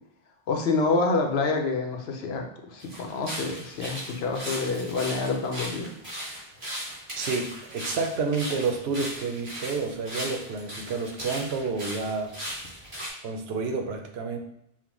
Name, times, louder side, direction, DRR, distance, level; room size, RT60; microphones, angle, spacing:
voice 1, 0.5-5.9, left 3 dB, 85° left, 3 dB, 0.9 m, -27 dB
sound 1, 2.8-13.1, equal, 50° right, 1.7 m, -37 dB
voice 2, 7.1-12.3 13.2-14.4, right 4 dB, 85° right, 4 dB, 0.9 m, -29 dB
5.8 x 2.1 x 2.9 m, 0.75 s
omnidirectional pair, 1.0 m